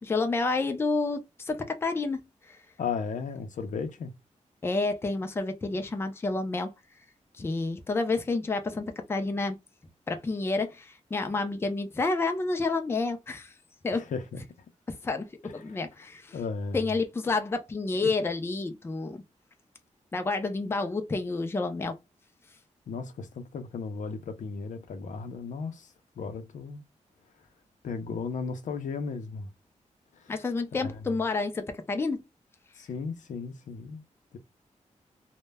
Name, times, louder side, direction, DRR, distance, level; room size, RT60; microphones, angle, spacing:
voice 1, 0.0-2.2 2.5-2.6 4.6-6.7 7.4-9.6 10.1-13.5 13.8-14.1 14.9-16.4 16.7-19.2 20.1-22.0 30.3-32.2, left 3 dB, 20° left, 0.4 m, -29 dB
voice 2, 2.8-4.1 13.9-14.4 15.4-15.5 16.3-16.9 18.0-18.1 22.9-25.9 26.2-26.8 27.8-29.5 30.2-30.3 30.8-30.9 32.8-34.0, left 5 dB, 75° left, 0.5 m, -35 dB
2.1 x 2.0 x 3.3 m
wide cardioid pair, 180°, 13 cm